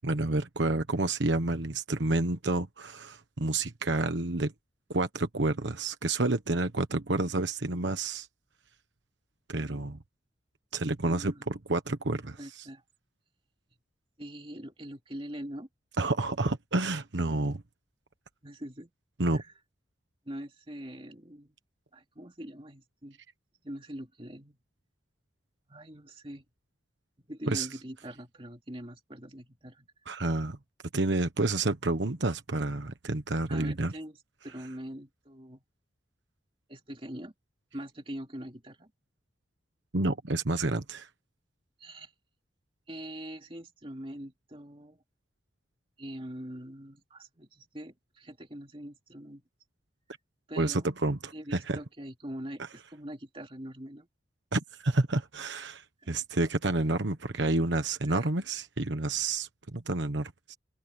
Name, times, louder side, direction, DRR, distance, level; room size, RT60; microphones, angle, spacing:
voice 1, 0.0-4.5 4.9-8.3 9.5-10.0 10.7-12.7 16.0-17.6 19.2-19.4 27.5-27.7 30.1-30.6 30.9-33.9 39.9-41.1 50.6-51.8 54.5-60.6, right 2 dB, 70° right, 1.2 m, -29 dB
voice 2, 11.0-11.5 12.4-12.8 14.2-15.7 18.4-18.9 19.3-19.5 20.2-21.6 21.9-23.2 23.6-24.6 25.7-26.4 27.3-29.9 33.5-34.2 34.4-35.6 36.7-37.3 37.7-38.9 41.8-42.1 42.9-45.0 46.0-49.4 50.5-50.9 51.3-54.1 56.1-56.2 58.1-58.3, right 1 dB, 30° right, 2.7 m, -43 dB
head